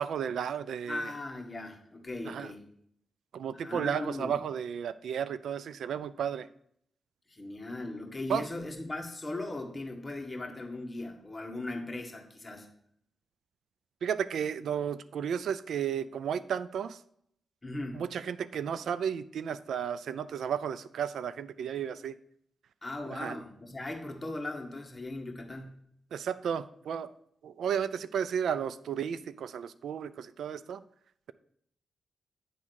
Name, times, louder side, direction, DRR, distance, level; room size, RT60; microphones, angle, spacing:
voice 1, 0.0-1.1 2.3-2.5 3.3-6.5 8.3-8.4 14.0-17.0 17.9-22.2 23.1-23.4 26.1-27.1 27.4-30.8, right 8 dB, 85° right, 15 dB, 0.3 m, -33 dB
voice 2, 0.9-2.6 3.6-4.4 7.3-12.7 17.6-18.0 22.8-25.8, left 2 dB, 20° left, 2 dB, 1.5 m, -38 dB
9.2 x 3.6 x 6.2 m, 0.70 s
cardioid pair, 85°, 0 cm